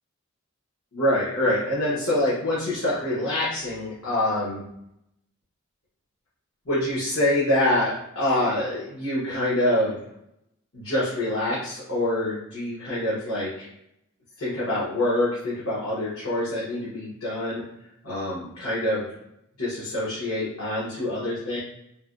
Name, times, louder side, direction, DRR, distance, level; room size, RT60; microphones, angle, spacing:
voice 1, 0.9-4.6 6.7-10.0 10.7-13.7 14.4-17.6 18.0-19.1 19.6-21.6, left 1 dB, 80° left, -9 dB, 0.9 m, -25 dB
3.3 x 2.1 x 2.4 m, 0.78 s
head